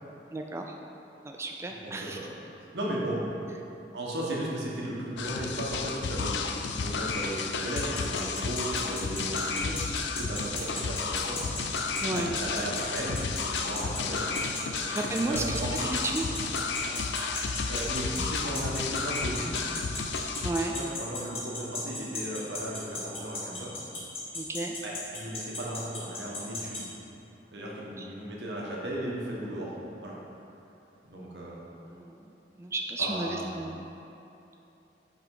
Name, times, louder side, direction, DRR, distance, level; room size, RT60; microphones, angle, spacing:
voice 1, 0.3-0.7 1.2-2.2 12.0-12.3 14.9-15.6 15.9-16.4 20.4-20.8 24.3-24.8 28.0-28.1 31.9-32.2 32.6-33.8, right 2 dB, 15° right, 1 dB, 0.3 m, -32 dB
voice 2, 1.8-2.3 2.7-3.3 3.9-9.8 10.2-11.4 12.1-14.4 14.7-15.8 17.7-19.6 20.5-23.8 24.8-26.9 27.5-29.7 30.0-30.1 31.1-31.7 33.0-33.5, right 1 dB, 80° right, -4 dB, 1.4 m, -36 dB
sound 1, 5.2-20.5, left 4 dB, 80° left, 0.4 m, -32 dB
sound 2, 7.8-26.8, left 3 dB, 35° left, 1.3 m, -35 dB
5.8 x 5.1 x 4.8 m, 2.9 s
head